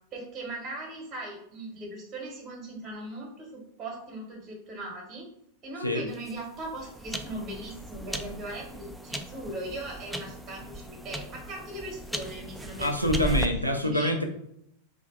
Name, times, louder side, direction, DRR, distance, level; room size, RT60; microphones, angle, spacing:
voice 1, 0.1-5.3 5.6-13.4 13.8-14.1, right 1 dB, 30° right, -1 dB, 1.1 m, -39 dB
sound 1, 6.1-13.5, right 1 dB, 5° right, 0.4 m, -36 dB
voice 2, 12.8-14.2, left 1 dB, 90° right, 3 dB, 0.5 m, -26 dB
3.3 x 2.5 x 3.8 m, 0.74 s
figure-of-eight pair, 90°, 0 cm